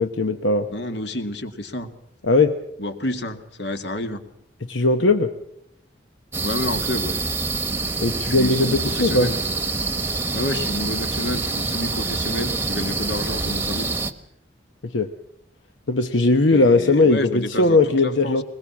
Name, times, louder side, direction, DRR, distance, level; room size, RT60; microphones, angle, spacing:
voice 1, 0.0-0.7 2.2-2.6 4.7-5.3 8.0-9.3 14.9-15.1 15.9-18.4, left 2 dB, 90° left, 7 dB, 1.1 m, -19 dB
voice 2, 0.7-1.9 2.8-4.2 6.4-7.2 8.2-9.4 10.3-14.0 16.5-18.4, left 1 dB, 70° left, 8 dB, 2.1 m, -29 dB
sound 1, 6.3-14.1, right 3 dB, 15° right, 1.1 m, -26 dB
21.5 x 21.5 x 7.3 m, 0.75 s
head